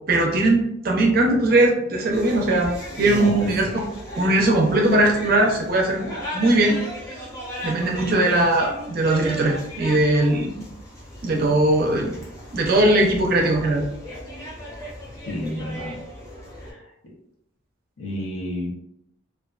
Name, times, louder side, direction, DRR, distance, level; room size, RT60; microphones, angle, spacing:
voice 1, 0.1-2.7 3.0-3.8 4.2-6.8 7.6-10.5 11.2-12.1 12.5-13.8, right 1 dB, 50° right, 1 dB, 0.5 m, -20 dB
sound 1, 2.1-16.7, equal, 15° left, 0.7 m, -36 dB
voice 2, 3.0-3.7 15.3-16.0 16.6-16.9 18.0-18.7, left 1 dB, 80° left, -3 dB, 0.6 m, -30 dB
2.4 x 2.2 x 2.3 m, 0.79 s
head